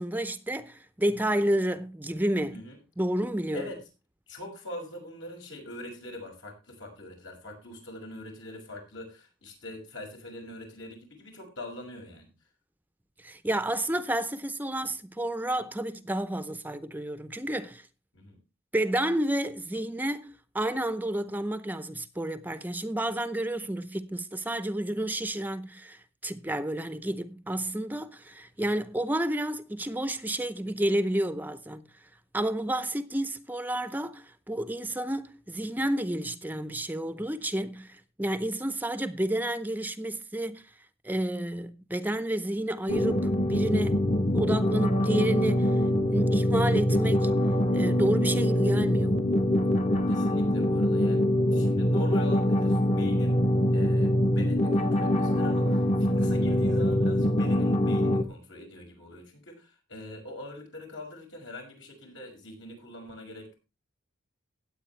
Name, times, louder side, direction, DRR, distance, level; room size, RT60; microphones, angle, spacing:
voice 1, 0.0-2.6 3.0-3.7 13.2-17.9 18.7-31.8 32.3-40.6 41.0-44.0 44.3-45.7 46.1-47.3 47.7-49.2, right 1 dB, 10° right, 0.6 m, -30 dB
voice 2, 4.3-12.3 18.1-18.4 50.1-53.4 53.7-63.6, left 1 dB, 75° left, 6.0 m, -43 dB
sound 1, 42.9-58.2, left 1 dB, 35° left, 1.0 m, -24 dB
18.0 x 8.4 x 3.2 m
head